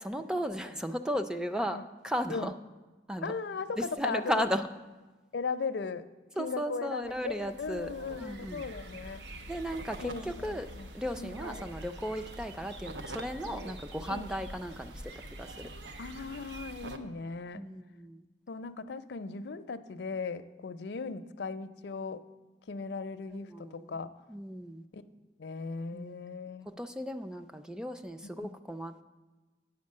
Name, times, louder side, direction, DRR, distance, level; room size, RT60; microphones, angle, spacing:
voice 1, 0.0-1.8 2.0-2.5 3.1-3.3 3.8-4.7 6.4-7.9 8.2-8.6 9.5-10.7 10.9-14.9 15.4-15.7 17.5-18.2 23.3-23.9 24.3-24.8 25.9-26.2 26.7-29.0, equal, 5° right, 8 dB, 0.4 m, -35 dB
voice 2, 3.2-4.5 5.3-6.1 6.4-9.2 10.0-10.9 11.2-11.4 14.1-14.3 16.0-17.7 18.5-22.2 22.7-24.1 24.9-25.0 25.4-26.7 28.4-28.6, left 4 dB, 70° left, 10 dB, 0.5 m, -37 dB
sound 1, 7.0-17.0, right 1 dB, 85° right, 0.8 m, -45 dB
9.6 x 5.9 x 7.4 m, 1.2 s
head